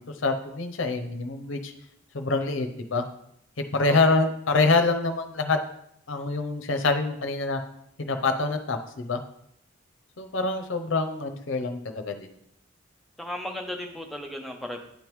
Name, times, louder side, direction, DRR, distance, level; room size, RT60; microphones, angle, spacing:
voice 1, 0.2-1.7 2.1-3.0 3.7-5.6 6.1-7.6 8.0-9.2 10.2-12.3, left 3 dB, 70° left, 5 dB, 0.7 m, -25 dB
voice 2, 13.2-14.8, left 1 dB, ahead, 2 dB, 0.6 m, -35 dB
10.5 x 3.5 x 3.1 m, 0.73 s
head